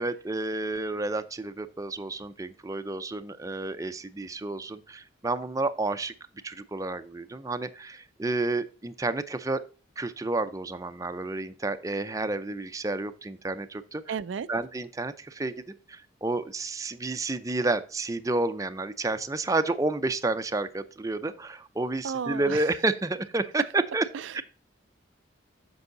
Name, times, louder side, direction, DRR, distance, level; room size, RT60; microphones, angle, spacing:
voice 1, 0.0-6.1 6.4-9.6 10.0-14.2 14.5-15.6 15.9-24.0 24.3-24.4, right 2 dB, 20° right, 0.5 m, -30 dB
voice 2, 14.1-14.5 22.0-22.6 24.1-24.4, right 7 dB, 85° right, 0.4 m, -33 dB
8.1 x 5.5 x 3.9 m
head